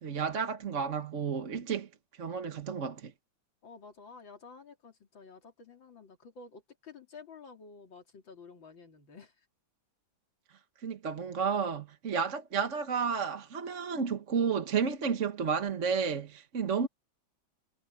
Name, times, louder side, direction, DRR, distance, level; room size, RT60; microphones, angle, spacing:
voice 1, 0.0-1.9 2.2-3.1 10.8-16.9, right 6 dB, 45° right, 1.5 m, -31 dB
voice 2, 3.6-9.3, left 4 dB, 90° left, 3.7 m, -51 dB
omnidirectional pair, 2.0 m